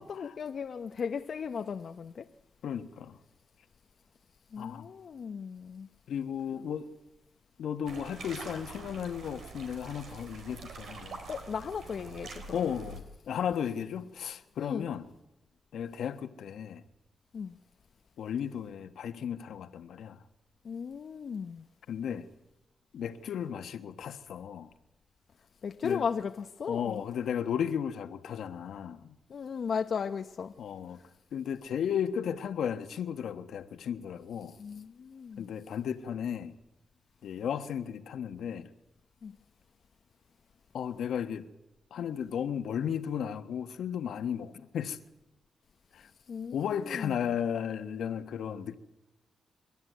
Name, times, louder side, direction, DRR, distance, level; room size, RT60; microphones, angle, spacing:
voice 1, 0.1-2.3 4.5-5.9 11.3-12.6 14.6-14.9 17.3-17.6 20.6-21.7 25.6-27.0 29.3-30.5 34.6-35.5 39.2-39.3 46.3-47.1, left 6 dB, 60° left, 0.8 m, -36 dB
voice 2, 2.6-3.2 4.6-4.9 6.1-6.9 7.6-11.2 12.5-15.1 15.7-16.8 18.2-20.2 21.9-22.2 22.9-24.7 25.8-26.0 26.7-29.1 30.6-31.0 31.3-34.5 35.4-36.5 37.2-38.7 40.7-41.4 41.9-45.0 45.9-46.1 46.5-48.8, left 8 dB, 85° left, 1.4 m, -34 dB
sound 1, 7.9-13.0, right 4 dB, 75° right, 4.1 m, -45 dB
27.5 x 13.5 x 9.3 m
cardioid pair, 80°, 0 cm